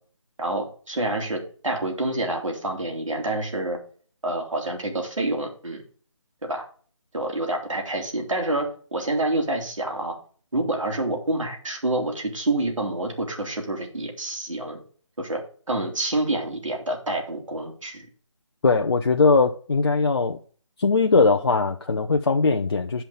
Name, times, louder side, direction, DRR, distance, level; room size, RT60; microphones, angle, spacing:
voice 1, 0.4-3.8 4.2-5.8 6.5-6.6 7.1-10.2 10.5-14.8 15.2-15.4 15.7-18.1, right 2 dB, 80° right, 3.6 m, -27 dB
voice 2, 18.6-20.4 20.8-23.0, left 4 dB, 50° left, 0.8 m, -20 dB
9.1 x 5.7 x 5.1 m
figure-of-eight pair, 160°, 16 cm